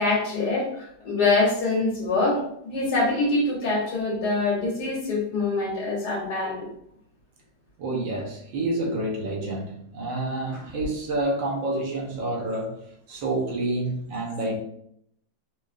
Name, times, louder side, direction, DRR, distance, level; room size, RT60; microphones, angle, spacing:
voice 1, 0.0-6.7, left 3 dB, 60° left, -4 dB, 1.7 m, -24 dB
voice 2, 7.8-12.8 13.1-14.6, right 2 dB, 85° right, -2 dB, 1.6 m, -28 dB
4.9 x 2.4 x 2.4 m, 0.71 s
omnidirectional pair, 2.0 m